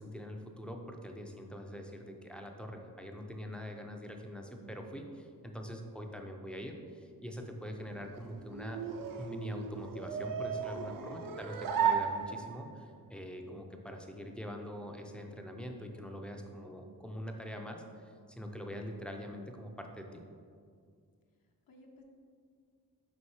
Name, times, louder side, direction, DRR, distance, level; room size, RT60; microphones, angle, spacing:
voice 1, 0.0-8.8 9.2-20.2, equal, 5° left, 3 dB, 0.4 m, -44 dB
sound 1, 7.8-12.8, right 7 dB, 70° right, 0.5 m, -35 dB
voice 2, 10.7-11.5 11.7-12.1 21.7-22.0, left 1 dB, 75° left, 0 dB, 0.8 m, -56 dB
5.1 x 4.1 x 4.7 m, 2.2 s
wide cardioid pair, 165°, 35 cm